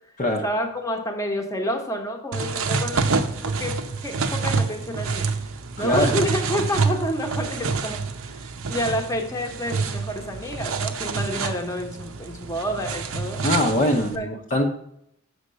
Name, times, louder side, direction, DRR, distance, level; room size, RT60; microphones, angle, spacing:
voice 1, 0.3-5.3 5.8-13.5 14.1-14.3, equal, 15° left, 3 dB, 1.0 m, -29 dB
sound 1, 2.3-14.2, right 4 dB, 70° right, 0.7 m, -27 dB
voice 2, 5.8-6.1 13.4-14.7, left 1 dB, 40° left, 1 dB, 0.8 m, -22 dB
6.8 x 5.1 x 6.2 m, 0.74 s
head